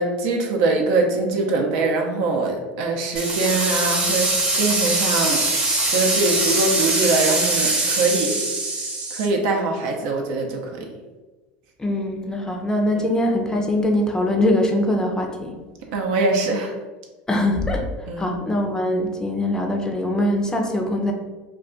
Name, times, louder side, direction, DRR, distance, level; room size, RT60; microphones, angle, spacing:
voice 1, 0.0-5.4 5.9-8.4 9.1-10.9 13.0-13.1 15.9-16.7 18.1-18.3, right 3 dB, 75° right, 2 dB, 0.6 m, -23 dB
sound 1, 3.2-9.3, right 2 dB, 25° right, 0.7 m, -22 dB
voice 2, 11.8-15.6 17.3-17.9 18.2-21.1, left 1 dB, 15° left, 2 dB, 0.5 m, -22 dB
2.3 x 2.3 x 3.7 m, 1.2 s
supercardioid pair, 100°, 5 cm